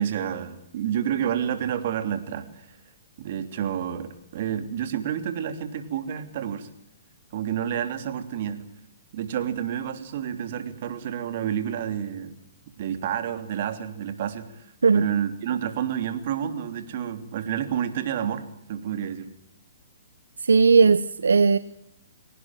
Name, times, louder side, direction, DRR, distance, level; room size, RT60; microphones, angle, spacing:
voice 1, 0.0-2.5 3.2-6.7 7.3-8.6 9.1-12.3 12.8-14.7 14.9-19.3, right 9 dB, 50° right, 9 dB, 3.2 m, -29 dB
voice 2, 20.4-21.6, right 5 dB, 85° right, 15 dB, 0.9 m, -17 dB
23.0 x 18.5 x 9.2 m, 0.75 s
hypercardioid pair, 135°, 0 cm